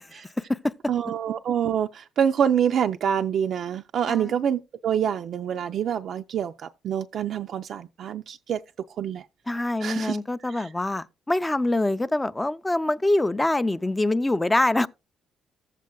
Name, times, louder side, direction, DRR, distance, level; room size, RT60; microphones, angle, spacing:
voice 1, 0.4-0.7 4.1-4.4 9.5-14.9, left 2 dB, 15° left, 0.4 m, -24 dB
voice 2, 0.9-8.6 9.0-9.3 9.8-10.2 10.5-10.7, right 8 dB, 65° right, 0.4 m, -26 dB
14.0 x 7.4 x 2.2 m
cardioid pair, 90°, 0 cm